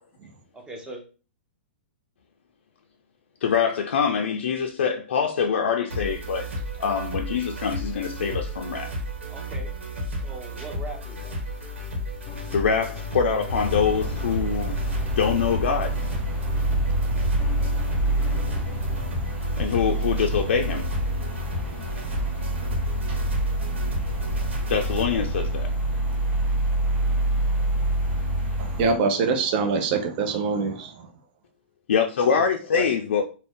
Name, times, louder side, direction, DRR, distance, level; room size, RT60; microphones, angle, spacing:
voice 1, 0.5-1.0 9.3-9.7 10.2-11.3 32.2-32.5 32.7-32.9, right 1 dB, 10° right, 0.7 m, -38 dB
voice 2, 3.4-6.5 6.8-8.9 12.5-14.8 15.1-15.9 19.6-20.9 24.7-25.7 31.9-33.2, left 6 dB, 80° left, 0.4 m, -24 dB
sound 1, 5.9-25.0, equal, 85° right, 1.1 m, -33 dB
sound 2, 12.3-19.1, left 2 dB, 30° left, 0.5 m, -40 dB
sound 3, 13.5-28.9, right 1 dB, 65° right, 1.4 m, -26 dB
voice 3, 28.6-31.1, right 4 dB, 50° right, 0.7 m, -24 dB
2.6 x 2.1 x 3.4 m
hypercardioid pair, 130°, 6 cm